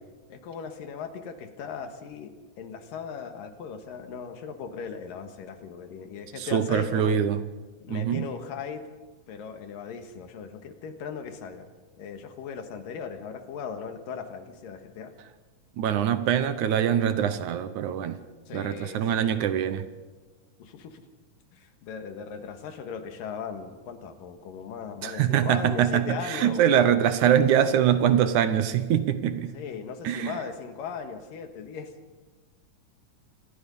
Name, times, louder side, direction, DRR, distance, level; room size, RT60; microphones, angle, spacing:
voice 1, 0.3-7.2 7.8-8.9 9.3-11.7 12.0-15.1 18.5-19.4 20.6-21.1 21.5-26.6 29.5-31.9, left 6 dB, 85° left, 3.3 m, -38 dB
voice 2, 6.4-7.4 7.9-8.3 15.8-18.2 18.5-19.9 25.0-29.6 30.0-30.3, right 9 dB, 70° right, 2.3 m, -23 dB
26.5 x 20.0 x 5.4 m
omnidirectional pair, 3.8 m